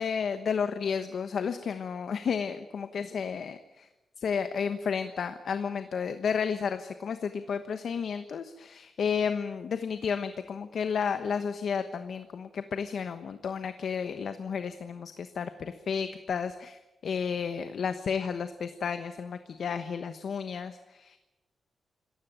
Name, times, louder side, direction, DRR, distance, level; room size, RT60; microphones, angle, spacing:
voice 1, 0.0-3.9 4.2-21.2, left 6 dB, 65° left, 9 dB, 1.1 m, -32 dB
26.5 x 15.0 x 9.1 m, 1.1 s
wide cardioid pair, 150°, 0 cm